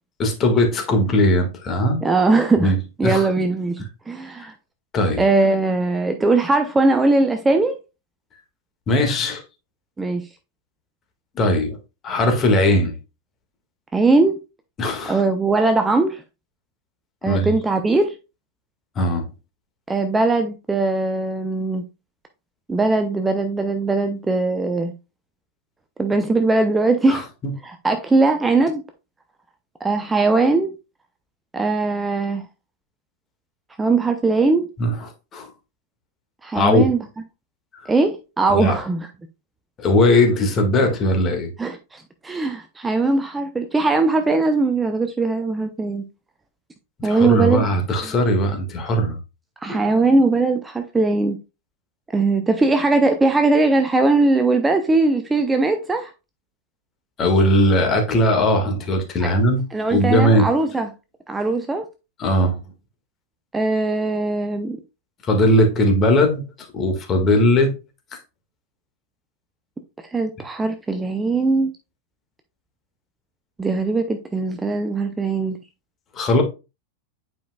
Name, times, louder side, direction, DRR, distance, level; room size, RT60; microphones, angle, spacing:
voice 1, 0.2-2.0 2.6-2.8 3.0-3.3 4.4-4.5 4.9-5.2 8.9-9.4 11.4-11.8 12.0-13.0 14.8-15.2 17.2-17.5 19.0-19.3 27.1-27.5 34.8-35.5 36.5-36.9 37.8-37.9 38.5-38.8 39.8-41.5 47.0-49.2 49.7-49.8 57.2-59.6 59.9-60.5 62.2-62.6 65.2-67.7 68.1-68.2 76.1-76.4, left 1 dB, 30° left, 1.7 m, -19 dB
voice 2, 2.0-2.7 3.0-4.5 5.2-7.8 10.0-10.2 13.9-14.4 15.1-16.2 17.2-18.1 19.9-21.8 22.7-24.9 26.0-27.2 27.7-28.8 29.8-30.7 31.5-32.5 33.8-34.7 36.4-37.0 37.9-39.1 41.6-46.0 47.0-47.6 49.6-51.4 52.1-56.1 59.2-59.3 59.7-60.9 61.3-61.8 63.5-64.8 70.1-71.7 73.6-75.6, right 3 dB, 10° right, 0.6 m, -20 dB
9.2 x 5.1 x 2.3 m
figure-of-eight pair, 90°, 0 cm